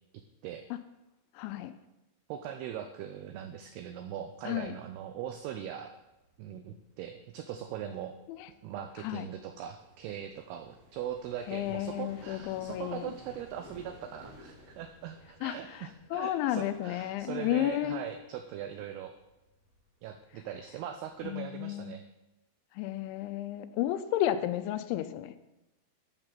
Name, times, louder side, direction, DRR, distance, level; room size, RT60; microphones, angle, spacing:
voice 1, 1.4-1.7 4.5-4.7 8.3-8.5 9.0-9.3 11.5-13.1 15.4-18.0 21.2-21.9 22.8-25.4, left 13 dB, 85° left, 11 dB, 3.0 m, -32 dB
voice 2, 2.3-5.9 6.4-8.1 8.6-19.1 20.0-22.0, right 10 dB, 80° right, 7 dB, 2.4 m, -40 dB
sound 1, 5.1-21.3, left 1 dB, 30° right, 5.9 m, -57 dB
11.5 x 8.9 x 6.0 m, 0.98 s
omnidirectional pair, 5.3 m